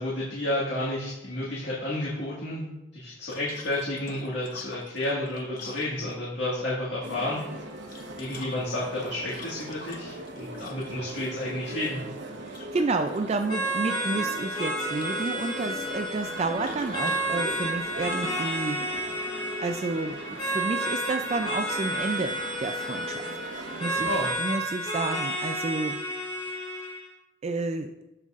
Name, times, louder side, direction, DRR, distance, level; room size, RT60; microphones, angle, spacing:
voice 1, 0.0-2.7 2.9-7.7 8.2-12.0 24.0-24.3, left 1 dB, 90° left, -6 dB, 1.8 m, -31 dB
sound 1, 3.3-6.4 7.7-11.1 12.5-13.2 13.5-14.2 14.5-15.4 16.6-18.6, left 3 dB, 50° left, 0.9 m, -46 dB
sound 2, 7.0-24.3, right 2 dB, 80° right, 1.0 m, -39 dB
voice 2, 12.4-18.9 19.6-23.3 23.8-24.1 24.4-26.0 27.4-27.9, right 3 dB, 35° right, 7 dB, 0.3 m, -30 dB
sound 3, 13.5-27.1, right 1 dB, 30° left, 2.0 m, -31 dB
13.5 x 5.4 x 2.5 m, 1.0 s
head